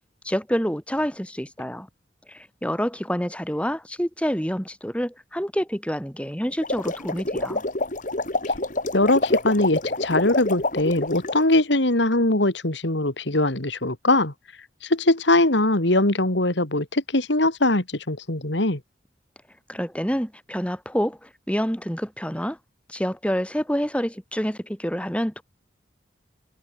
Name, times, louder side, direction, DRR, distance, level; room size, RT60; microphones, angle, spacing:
voice 1, 0.2-1.9 2.3-7.6 19.7-22.6 22.9-25.4, equal, 5° left, 8.0 m, -27 dB
sound 1, 6.5-11.4, left 2 dB, 40° left, 2.3 m, -27 dB
voice 2, 8.9-14.3 14.8-18.8, left 2 dB, 70° left, 3.0 m, -21 dB
head